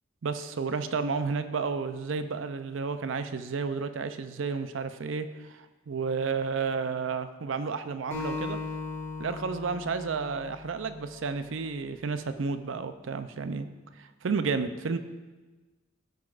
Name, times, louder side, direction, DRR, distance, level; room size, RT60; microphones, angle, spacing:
voice 1, 0.2-8.6 9.2-13.7 14.0-15.0, right 5 dB, 70° right, 10 dB, 0.5 m, -31 dB
Acoustic guitar, 8.1-11.4, left 3 dB, 15° left, 1.8 m, -38 dB
15.0 x 6.0 x 2.5 m, 1.2 s
head